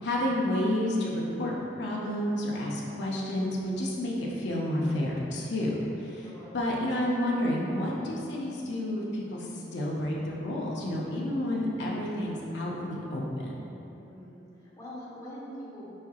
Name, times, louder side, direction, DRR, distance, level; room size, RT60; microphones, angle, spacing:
voice 1, 0.0-6.3 6.5-13.6, left 1 dB, 60° left, -4 dB, 0.6 m, -30 dB
voice 2, 6.2-6.6 13.9-15.9, equal, 15° left, -8 dB, 0.7 m, -44 dB
4.6 x 4.3 x 2.4 m, 2.9 s
head